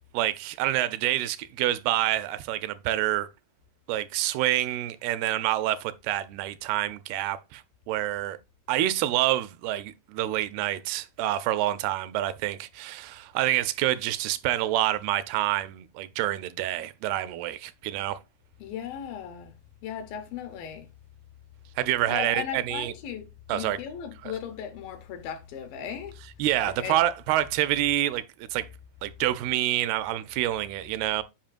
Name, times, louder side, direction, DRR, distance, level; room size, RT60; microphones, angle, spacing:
voice 1, 0.1-3.3 3.9-8.4 8.7-18.2 21.8-22.9 23.5-23.8 24.2-24.3 26.4-28.2 28.5-28.7 29.0-31.2, right 14 dB, 80° right, 2.4 m, -27 dB
voice 2, 18.6-19.5 19.8-20.9 22.1-23.3 23.5-26.2 26.7-27.0, left 9 dB, 75° left, 2.3 m, -37 dB
8.8 x 5.4 x 2.5 m
omnidirectional pair, 4.6 m